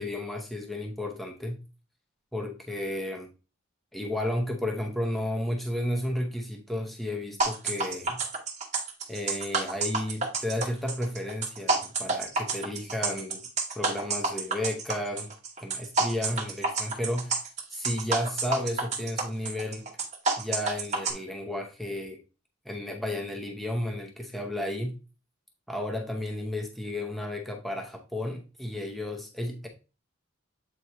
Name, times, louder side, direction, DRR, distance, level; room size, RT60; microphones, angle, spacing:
voice 1, 0.0-1.6 2.3-3.3 3.9-8.2 9.1-13.4 13.7-15.3 15.6-17.4 17.7-19.9 20.4-22.2 22.6-25.0 25.7-29.7, left 1 dB, ahead, 1 dB, 0.8 m, -32 dB
sound 1, 7.4-21.1, right 3 dB, 35° right, 1.2 m, -29 dB
8.1 x 4.4 x 3.0 m, 0.33 s
head